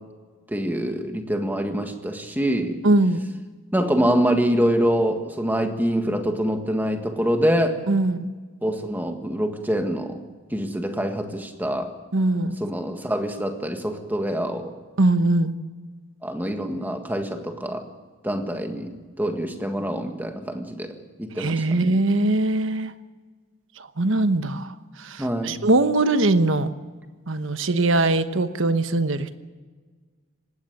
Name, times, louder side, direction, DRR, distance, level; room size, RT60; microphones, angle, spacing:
voice 1, 0.5-2.8 3.7-7.8 8.6-10.2 10.5-11.9 12.6-14.7 16.2-17.8 18.2-21.9 25.2-25.6, equal, 10° right, 5 dB, 1.7 m, -25 dB
voice 2, 2.8-3.3 7.9-8.3 12.1-12.6 15.0-15.5 21.4-22.9 24.0-24.7 25.0-26.7 27.3-29.4, right 2 dB, 65° right, 10 dB, 1.1 m, -21 dB
19.0 x 16.0 x 9.1 m, 1.4 s
head